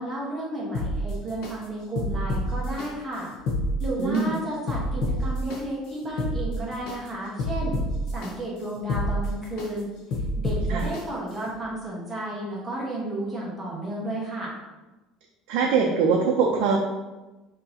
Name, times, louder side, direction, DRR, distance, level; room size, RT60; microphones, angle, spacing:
voice 1, 0.0-3.3 3.8-7.8 8.1-9.9 10.4-14.5, right 1 dB, 5° right, -7 dB, 1.1 m, -32 dB
sound 1, 0.7-1.5 2.0-2.9 3.3-4.2 4.7-5.6 6.0-7.0 7.4-8.3 8.8-9.7 10.1-11.0 11.5-11.6, equal, 55° left, 0.8 m, -28 dB
voice 2, 4.0-4.3 10.7-10.8 15.5-16.8, right 5 dB, 65° right, 0 dB, 0.5 m, -22 dB
6.2 x 2.9 x 2.8 m, 1.1 s
cardioid pair, 175°, 0 cm